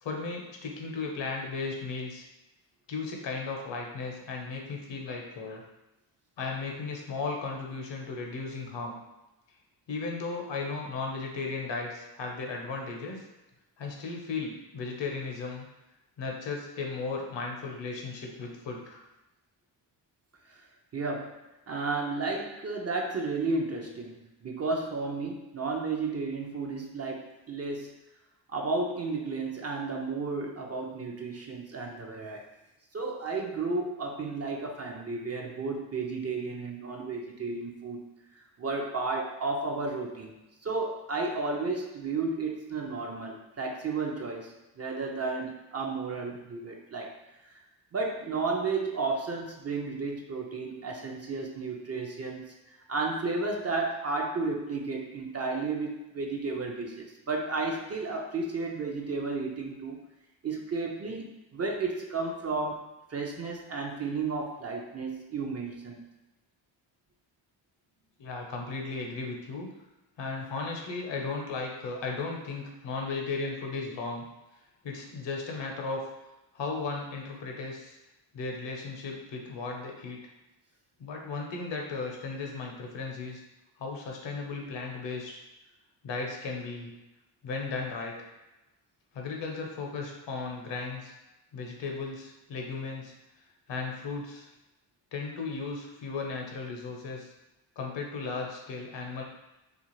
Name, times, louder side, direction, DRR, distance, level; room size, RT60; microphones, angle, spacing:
voice 1, 0.0-2.3 2.9-5.6 6.4-9.0 9.9-13.2 13.8-15.6 16.2-19.0 68.2-69.7 70.2-74.2 74.8-76.0 76.5-78.0 78.3-80.2 81.0-83.4 83.8-85.4 86.0-86.9 87.4-88.3 89.1-91.1 91.5-93.1 93.7-94.5 95.1-97.3 97.8-99.2, left 4 dB, 60° left, 1 dB, 0.8 m, -35 dB
voice 2, 20.9-27.9 28.5-32.4 32.9-38.0 38.6-40.3 40.6-47.1 47.9-52.4 52.9-60.0 60.4-62.8 63.1-66.0, right 3 dB, 30° right, 0 dB, 0.5 m, -33 dB
2.5 x 2.4 x 3.0 m, 1.0 s
supercardioid pair, 55°, 49 cm